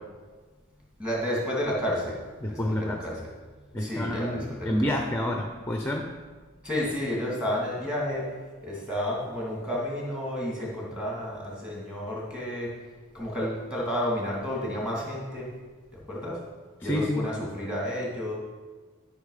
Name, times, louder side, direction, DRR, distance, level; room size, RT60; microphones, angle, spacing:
voice 1, 1.0-2.1 2.5-3.3 3.7-4.9 6.6-8.3 8.6-12.7 13.1-15.5 16.1-16.4 16.8-18.3, left 1 dB, 5° right, -4 dB, 2.5 m, -31 dB
voice 2, 2.4-3.0 3.7-6.1 16.8-17.3, left 1 dB, 10° left, 3 dB, 0.6 m, -28 dB
12.5 x 5.8 x 4.9 m, 1.4 s
head